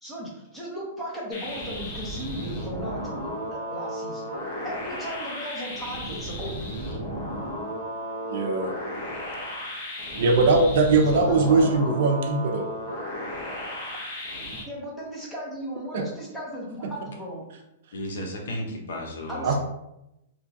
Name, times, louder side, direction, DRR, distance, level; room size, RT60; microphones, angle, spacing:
voice 1, 0.0-4.2 4.6-6.6 11.1-12.0 14.7-17.4 19.3-19.5, equal, 5° left, -5 dB, 0.7 m, -36 dB
sound 1, 1.3-14.6, equal, 40° left, 0.8 m, -34 dB
voice 2, 8.3-8.7 10.2-12.7 15.9-16.0 19.4-19.5, right 3 dB, 60° right, 3 dB, 0.5 m, -21 dB
voice 3, 17.9-19.5, left 1 dB, 85° left, 0 dB, 0.8 m, -33 dB
2.9 x 2.3 x 2.6 m, 0.87 s
hypercardioid pair, 160°, 0 cm